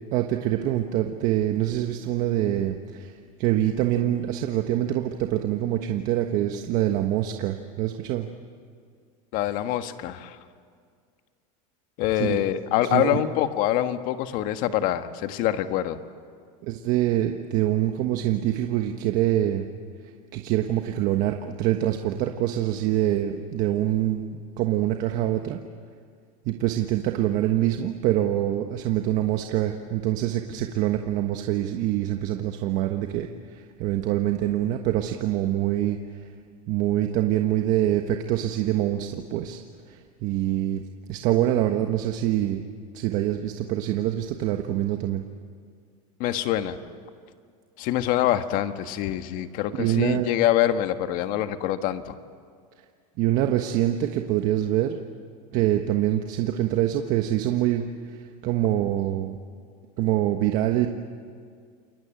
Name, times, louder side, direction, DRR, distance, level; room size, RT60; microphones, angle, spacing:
voice 1, 0.1-8.3 12.1-12.4 12.9-13.2 16.6-19.7 20.3-25.6 26.4-36.2 36.7-39.6 39.9-40.8 41.1-42.6 42.9-45.2 49.7-50.3 53.2-55.0 55.5-59.4 60.0-60.9, right 12 dB, 50° right, 5 dB, 1.4 m, -25 dB
voice 2, 9.3-10.4 12.0-16.0 46.2-46.8 47.8-52.2, left 12 dB, 50° left, 9 dB, 1.5 m, -25 dB
28.5 x 22.5 x 9.0 m, 2.1 s
supercardioid pair, 150°, 18 cm